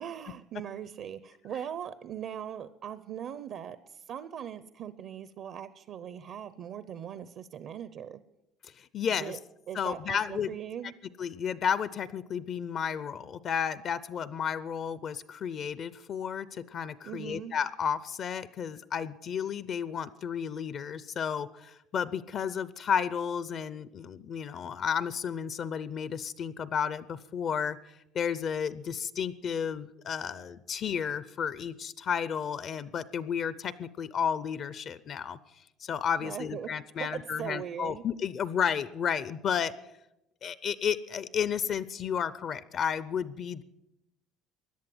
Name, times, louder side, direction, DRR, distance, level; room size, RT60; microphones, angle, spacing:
voice 1, 0.0-8.2 9.2-9.4 9.7-11.0 17.0-17.5 36.2-36.7 37.0-38.0, right 9 dB, 40° right, 14 dB, 0.6 m, -40 dB
voice 2, 8.8-9.4 9.7-10.5 11.2-27.8 28.1-35.4 35.8-39.7 40.4-43.6, left 7 dB, 35° left, 17 dB, 0.5 m, -32 dB
16.5 x 11.0 x 7.7 m, 0.88 s
cardioid pair, 180°, 0 cm